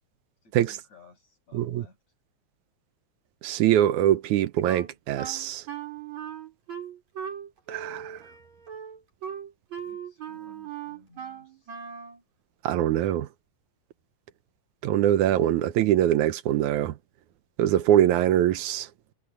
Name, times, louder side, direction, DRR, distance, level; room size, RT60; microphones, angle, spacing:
voice 1, 0.4-2.0 9.8-11.7 15.3-15.7, left 3 dB, 65° left, 8.8 m, -56 dB
voice 2, 1.5-1.8 3.4-5.6 7.7-8.2 12.6-13.3 14.8-17.0 17.6-18.9, right 12 dB, 85° right, 2.3 m, -23 dB
Wind instrument woodwind instrument, 4.7-12.2, right 8 dB, 65° right, 7.6 m, -39 dB
omnidirectional pair, 3.4 m